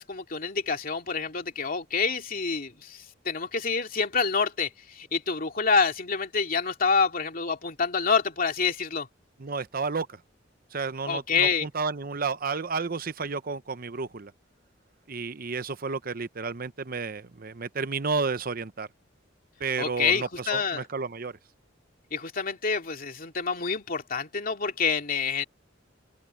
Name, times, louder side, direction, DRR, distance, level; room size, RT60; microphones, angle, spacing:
voice 1, 0.0-9.1 11.1-11.7 19.8-20.9 22.1-25.4, left 5 dB, 50° left, 2.7 m, -27 dB
voice 2, 9.4-10.2 10.7-14.3 15.1-18.9 19.6-21.4, right 4 dB, 50° right, 0.8 m, -31 dB
head